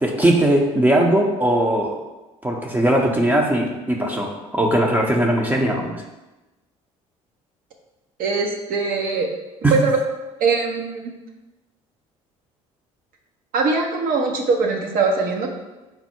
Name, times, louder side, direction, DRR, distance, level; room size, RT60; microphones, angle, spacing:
voice 1, 0.0-1.9 2.4-6.0 9.6-9.8, right 1 dB, 10° right, -1 dB, 0.6 m, -19 dB
voice 2, 8.2-9.3 9.7-9.9 10.4-11.1 13.5-15.5, right 4 dB, 60° right, 1 dB, 0.6 m, -21 dB
4.5 x 2.0 x 4.3 m, 1.1 s
hypercardioid pair, 65°, 17 cm